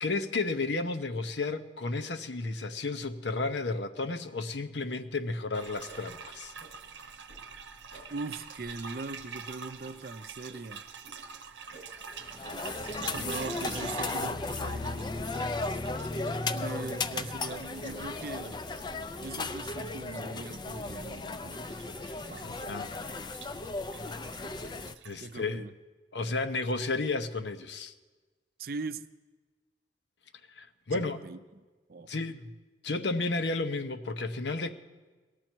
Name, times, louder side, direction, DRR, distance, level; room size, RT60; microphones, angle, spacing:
voice 1, 0.0-6.5 22.4-22.9 25.0-25.7 26.1-27.9 30.5-31.2 32.1-32.5 32.8-34.7, left 3 dB, 70° left, 0.8 m, -32 dB
sound 1, 5.5-25.3, right 6 dB, 80° right, 0.8 m, -46 dB
sound 2, 5.9-6.1 6.6-6.8 7.3-7.4 7.9-8.1 8.6-8.8 9.3-9.4 9.8-10.0 10.5-10.6 11.0-11.2 11.7-11.9 12.4-12.6 13.1-13.4 13.8-14.0 14.5-14.6 15.1-15.6 16.0-16.1 16.6-16.7 17.2-17.4 17.8-18.2 18.7-18.8, right 1 dB, 90° left, 5.3 m, -53 dB
voice 2, 8.1-10.8 13.1-15.1 16.5-18.6 19.2-21.6 22.3-22.8 25.2-25.7 28.6-29.0 30.9-31.4 31.9-32.1, right 3 dB, 50° right, 0.5 m, -40 dB
sound 3, 12.0-24.9, left 3 dB, 25° left, 0.4 m, -35 dB
19.5 x 13.0 x 4.5 m
head